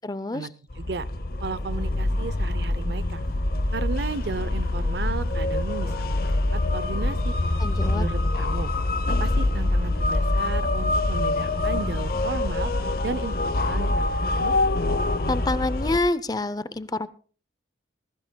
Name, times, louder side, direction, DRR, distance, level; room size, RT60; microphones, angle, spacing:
voice 1, 0.0-0.5 7.6-8.1 15.3-17.1, left 2 dB, 20° left, 15 dB, 0.5 m, -27 dB
sound 1, 0.7-16.0, left 2 dB, 50° left, 0.8 m, -25 dB
voice 2, 0.8-1.1 1.4-3.2 3.7-7.3 7.9-8.7 9.1-12.7 13.0-14.6, right 4 dB, 65° right, 17 dB, 0.6 m, -34 dB
20.0 x 15.5 x 2.2 m, 0.40 s
head